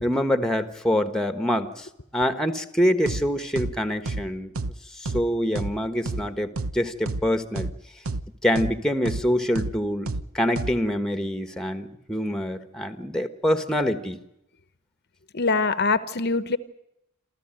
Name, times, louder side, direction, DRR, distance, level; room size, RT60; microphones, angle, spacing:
voice 1, 0.0-1.9 2.1-4.5 5.0-7.7 8.4-10.1 10.3-14.2, equal, 5° left, 10 dB, 1.3 m, -25 dB
sound 1, 3.1-3.2 3.6-3.7 4.1-4.2 4.6-4.7 5.1-5.2 5.6-5.7 6.1-6.2 6.6-6.7 7.1-7.2 7.6-7.7 8.1-8.2 8.6-8.7 9.1-9.2 9.6-9.7 10.1-10.2 10.6-10.7, right 2 dB, 90° right, 0.9 m, -29 dB
voice 2, 15.3-16.6, left 4 dB, 50° left, 13 dB, 0.9 m, -23 dB
28.0 x 13.5 x 8.9 m, 0.82 s
head